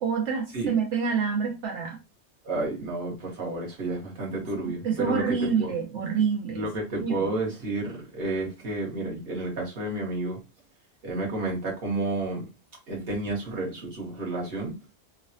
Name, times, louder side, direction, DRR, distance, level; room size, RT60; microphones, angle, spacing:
voice 1, 0.0-2.0 4.8-6.7 7.0-7.3, right 6 dB, 85° right, 1.0 m, -27 dB
voice 2, 2.4-5.7 6.5-10.4 11.0-12.5 12.9-14.7, right 2 dB, 60° right, 1.3 m, -31 dB
3.1 x 2.0 x 2.7 m
omnidirectional pair, 1.2 m